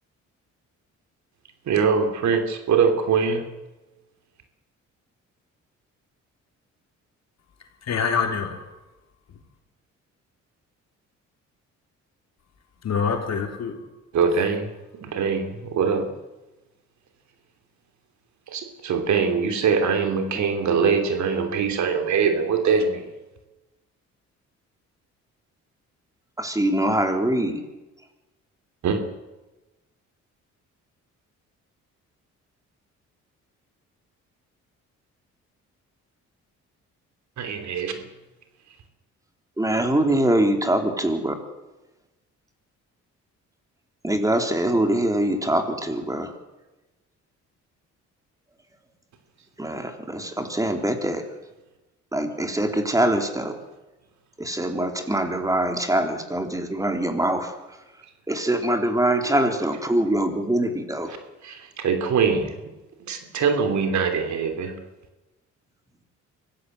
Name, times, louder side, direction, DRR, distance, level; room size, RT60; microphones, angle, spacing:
voice 1, 1.7-3.4 14.1-14.7 15.0-16.1 18.5-23.0 28.8-29.0 37.4-38.0 61.4-62.6 63.1-64.7, right 5 dB, 70° right, 7 dB, 3.1 m, -23 dB
voice 2, 7.8-8.7 9.3-9.4 12.8-13.8, left 6 dB, 60° left, 4 dB, 3.7 m, -26 dB
voice 3, 26.4-27.7 39.6-41.3 44.0-46.3 49.6-51.3 52.1-53.6 54.4-57.6 58.3-61.1, right 1 dB, 10° right, 5 dB, 3.5 m, -23 dB
24.0 x 15.5 x 7.9 m, 1.1 s
cardioid pair, 90°, 30 cm